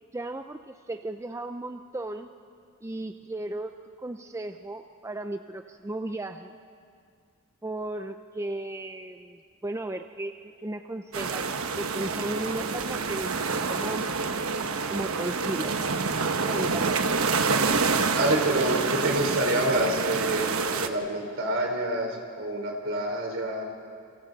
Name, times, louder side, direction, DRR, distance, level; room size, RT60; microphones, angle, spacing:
voice 1, 0.1-2.3 2.8-6.6 7.6-10.4 10.6-11.5 11.8-14.1 14.9-15.8 16.4-17.0, right 1 dB, 15° right, 7 dB, 0.4 m, -35 dB
sound 1, 11.1-20.9, right 4 dB, 75° right, 1.1 m, -27 dB
voice 2, 18.1-23.6, right 1 dB, 60° right, 2 dB, 3.8 m, -27 dB
29.0 x 27.5 x 4.0 m, 2.2 s
head